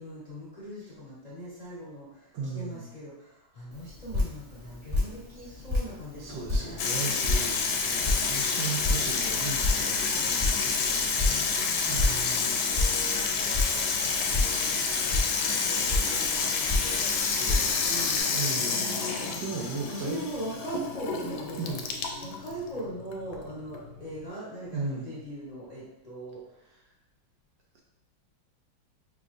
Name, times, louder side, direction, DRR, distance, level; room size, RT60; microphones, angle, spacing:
voice 1, 0.0-6.8 11.1-17.1 17.6-21.7 22.2-26.4, right 1 dB, 25° left, -9 dB, 1.0 m, -41 dB
voice 2, 2.3-2.9 6.2-11.0 11.9-12.7 17.3-20.2 21.6-21.9 24.7-25.2 27.7-27.8, right 4 dB, 70° right, -1 dB, 1.3 m, -37 dB
Drip, 3.7-18.2, left 2 dB, 25° right, 0.6 m, -32 dB
Water tap faucet / Sink (filling or washing), 6.8-24.3, left 5 dB, 80° left, 1.3 m, -29 dB
4.8 x 3.2 x 2.5 m, 0.88 s
omnidirectional pair, 2.1 m